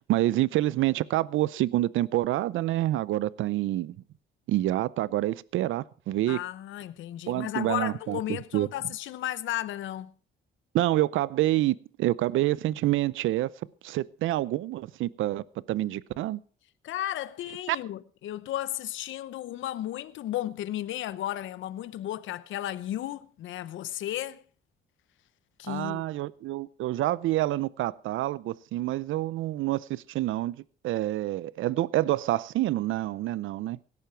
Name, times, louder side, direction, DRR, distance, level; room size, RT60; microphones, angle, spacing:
voice 1, 0.0-4.0 4.5-6.4 7.3-8.2 8.5-8.7 10.7-13.5 13.8-16.4 17.7-17.8 25.7-30.6 30.8-33.8, right 15 dB, 80° right, 0.6 m, -27 dB
voice 2, 6.3-10.1 16.8-24.4 25.6-26.0, left 13 dB, 75° left, 0.7 m, -34 dB
17.5 x 11.0 x 4.5 m
cardioid pair, 90°, 20 cm